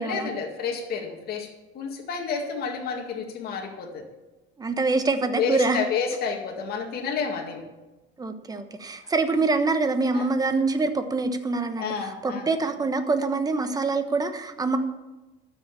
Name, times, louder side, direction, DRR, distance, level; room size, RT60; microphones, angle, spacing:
voice 1, 0.0-1.5 1.7-4.0 5.4-7.6 10.1-10.3 11.8-12.5, left 5 dB, 50° left, 1 dB, 2.1 m, -30 dB
voice 2, 4.6-5.8 8.2-14.8, right 3 dB, 20° right, 8 dB, 1.2 m, -25 dB
12.5 x 6.5 x 8.4 m, 1.1 s
cardioid pair, 130°, 20 cm